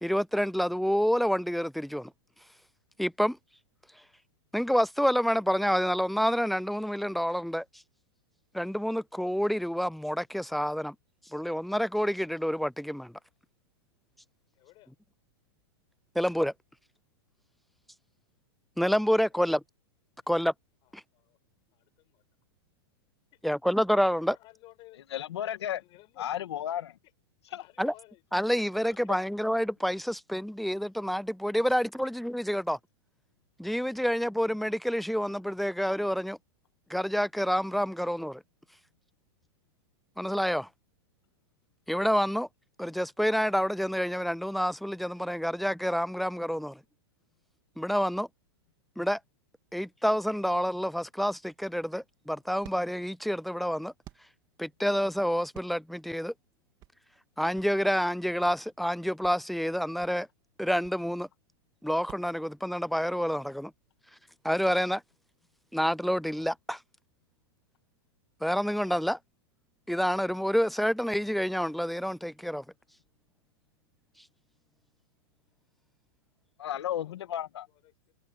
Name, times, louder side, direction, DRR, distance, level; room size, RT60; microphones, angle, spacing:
voice 1, 0.0-2.1 3.0-3.4 4.5-7.6 8.5-10.9 11.3-13.1 16.2-16.5 18.8-19.6 20.3-20.5 23.4-24.4 27.8-27.9 28.3-32.8 33.6-36.4 36.9-38.4 40.2-40.7 41.9-42.5 42.8-46.8 47.8-48.3 49.0-49.2 49.7-53.9 54.6-56.3 57.4-60.3 60.6-61.3 61.8-63.7 64.4-65.0 65.7-66.8 68.4-69.2 69.9-72.6, equal, ahead, 0.4 m, -28 dB
voice 2, 14.5-14.9 19.4-19.6 20.8-21.4 21.7-22.2 24.1-25.0 25.7-26.3 27.5-28.2 77.0-77.2 77.8-78.1, left 19 dB, 35° left, 6.7 m, -56 dB
voice 3, 25.1-25.8 26.2-26.9 27.5-27.6 76.6-77.7, left 11 dB, 80° left, 1.9 m, -33 dB
sound 1, 51.5-62.3, right 15 dB, 30° right, 3.3 m, -54 dB
supercardioid pair, 150°, 14 cm